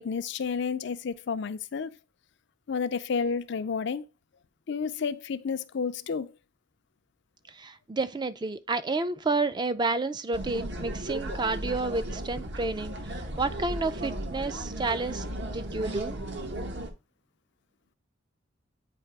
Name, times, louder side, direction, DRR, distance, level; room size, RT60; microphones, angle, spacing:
voice 1, 0.0-1.9 2.7-4.0 4.7-6.3, left 5 dB, 65° left, 0.5 m, -31 dB
voice 2, 7.5-15.2 15.5-16.2, right 3 dB, 25° right, 0.4 m, -30 dB
sound 1, 10.3-16.9, right 1 dB, 60° right, 1.1 m, -35 dB
8.4 x 2.8 x 4.6 m
head